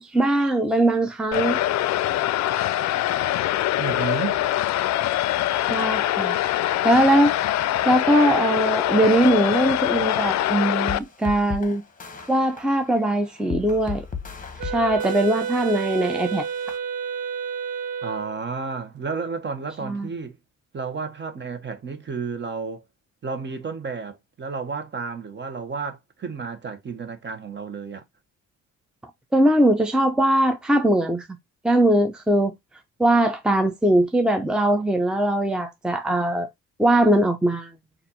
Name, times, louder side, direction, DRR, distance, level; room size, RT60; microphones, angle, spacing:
voice 1, 0.0-1.6 5.7-6.4 6.8-7.4 7.9-11.8 12.3-14.0 14.6-16.5 19.8-20.1 29.3-31.3 31.6-32.5 33.0-36.5 36.8-37.7, right 1 dB, 5° right, 0.6 m, -20 dB
sound 1, 1.3-11.0, left 13 dB, 65° left, 0.4 m, -23 dB
voice 2, 3.8-4.4 18.0-20.4 20.7-22.8 23.2-28.0, right 5 dB, 40° right, 1.1 m, -32 dB
sound 2, 10.9-16.8, left 6 dB, 25° left, 1.0 m, -37 dB
Wind instrument woodwind instrument, 14.6-18.4, right 7 dB, 80° right, 0.7 m, -30 dB
4.2 x 2.6 x 4.1 m
cardioid pair, 90°, 30 cm